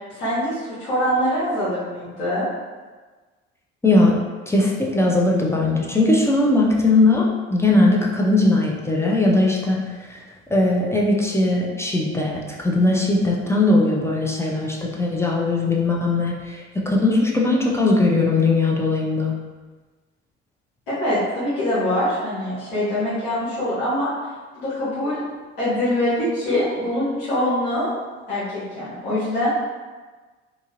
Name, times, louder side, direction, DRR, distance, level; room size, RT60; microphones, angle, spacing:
voice 1, 0.1-2.5 20.9-24.1 24.5-25.2 25.6-27.9 28.3-29.5, left 1 dB, 75° left, -11 dB, 1.1 m, -23 dB
voice 2, 3.8-4.2 4.5-9.8 10.1-10.2 10.5-19.3, left 2 dB, 10° left, -3 dB, 0.5 m, -19 dB
2.8 x 2.4 x 2.9 m, 1.3 s
hypercardioid pair, 60°, 32 cm